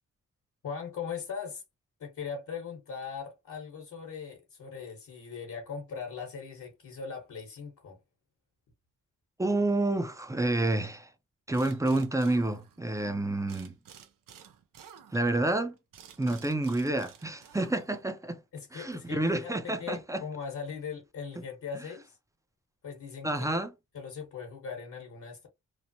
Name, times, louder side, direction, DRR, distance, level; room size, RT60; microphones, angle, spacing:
voice 1, 0.6-1.6 2.0-8.0 18.5-22.2 22.8-23.6 23.9-25.5, left 6 dB, 70° left, 1.1 m, -40 dB
voice 2, 9.4-11.1 11.5-13.8 15.1-15.8 16.2-18.4 18.7-20.2 23.2-23.7, right 2 dB, 10° right, 0.4 m, -29 dB
sound 1, 11.5-13.1 13.5-18.2, right 8 dB, 90° right, 0.6 m, -53 dB
3.1 x 2.1 x 2.6 m
wide cardioid pair, 100°, 32 cm